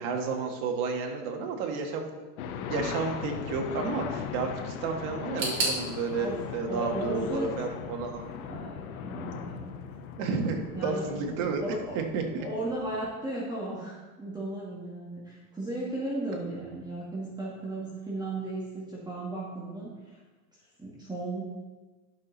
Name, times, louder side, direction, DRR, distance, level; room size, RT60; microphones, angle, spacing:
voice 1, 0.0-2.1 2.5-8.2 10.2-11.6 12.0-12.5, right 4 dB, 55° right, 2 dB, 1.8 m, -31 dB
sound 1, 2.4-13.1, left 7 dB, 85° left, 1.0 m, -39 dB
sound 2, 5.4-8.3 8.5-9.3 9.6-9.7 10.6-10.7, right 2 dB, 30° right, 3.3 m, -35 dB
voice 2, 6.7-7.5 8.4-9.7 10.7-11.0 11.6-12.0 12.4-20.2 20.8-21.4, right 2 dB, 10° right, -6 dB, 2.2 m, -35 dB
11.5 x 6.1 x 4.1 m, 1.3 s
supercardioid pair, 120°, 42 cm